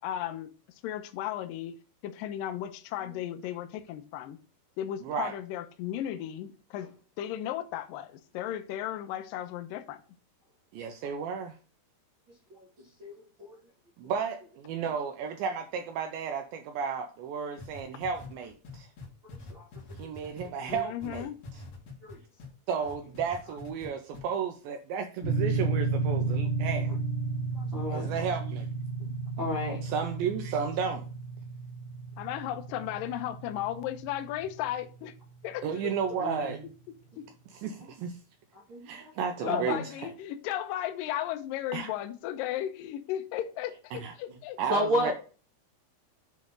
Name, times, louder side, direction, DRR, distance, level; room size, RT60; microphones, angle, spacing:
voice 1, 0.0-0.5 0.8-1.7 2.0-4.4 4.8-6.9 7.2-10.0 20.7-21.4 32.2-35.1 35.4-35.9 37.2-37.3 39.5-44.6, left 12 dB, 90° left, 2.0 m, -35 dB
voice 2, 5.0-5.4 10.7-11.6 14.0-18.9 20.0-21.6 22.7-27.0 27.9-28.7 29.8-31.0 35.6-36.6 37.5-38.2 38.9-40.1 41.7-41.9 43.9-44.1 44.6-45.1, right 6 dB, 85° right, 2.1 m, -33 dB
sound 1, 17.6-22.5 22.8-23.9 24.1-24.2, left 2 dB, 50° left, 2.5 m, -45 dB
sound 2, 25.2-35.4, right 3 dB, 70° left, 0.5 m, -33 dB
voice 3, 27.5-28.1 29.0-29.1 29.4-29.8 36.2-36.6 37.8-37.9 38.7-39.1 39.4-39.8 44.7-45.1, equal, 60° right, 1.2 m, -31 dB
7.9 x 3.2 x 5.1 m
omnidirectional pair, 4.7 m